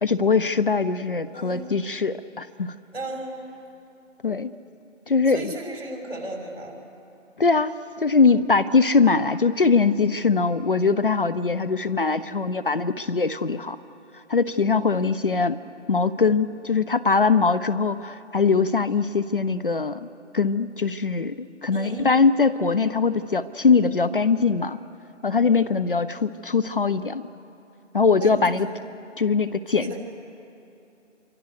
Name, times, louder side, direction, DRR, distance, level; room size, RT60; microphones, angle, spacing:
voice 1, 0.0-2.7 4.2-4.5 5.1-5.5 7.4-13.8 14.3-15.6 15.9-20.1 20.3-24.8 25.2-27.3 27.9-28.7 29.2-30.0, left 4 dB, 45° left, 14 dB, 0.7 m, -22 dB
voice 2, 1.3-1.7 2.9-3.4 5.3-6.8 21.7-22.1 28.2-29.0 29.7-30.0, right 1 dB, 50° right, 1 dB, 6.0 m, -35 dB
27.5 x 24.5 x 6.6 m, 2.8 s
figure-of-eight pair, 160°, 37 cm